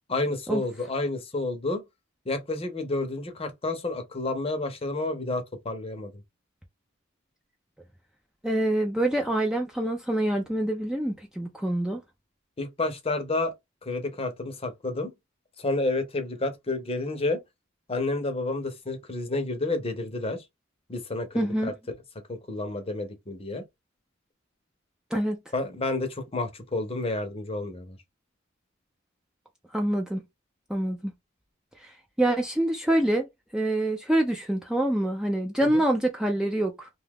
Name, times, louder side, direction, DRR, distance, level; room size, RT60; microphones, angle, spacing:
voice 1, 0.1-1.8 2.3-6.1 12.6-13.5 13.8-15.1 15.6-17.4 17.9-20.4 20.9-22.0 22.3-23.6 25.5-28.0 35.6-35.8, left 2 dB, 30° left, 0.7 m, -30 dB
voice 2, 8.4-12.0 21.3-21.7 25.1-25.4 29.7-30.2 30.7-31.1 31.8-31.9 32.2-33.3 33.5-36.9, right 1 dB, 5° right, 0.4 m, -26 dB
2.7 x 2.3 x 3.4 m
head